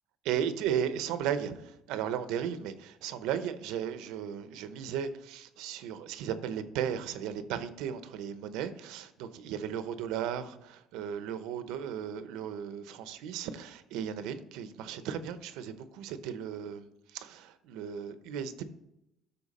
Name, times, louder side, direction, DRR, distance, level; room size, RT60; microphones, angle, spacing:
voice 1, 0.2-18.6, right 8 dB, 80° right, 11 dB, 0.8 m, -35 dB
12.5 x 4.5 x 4.2 m, 0.85 s
cardioid pair, 150°, 0 cm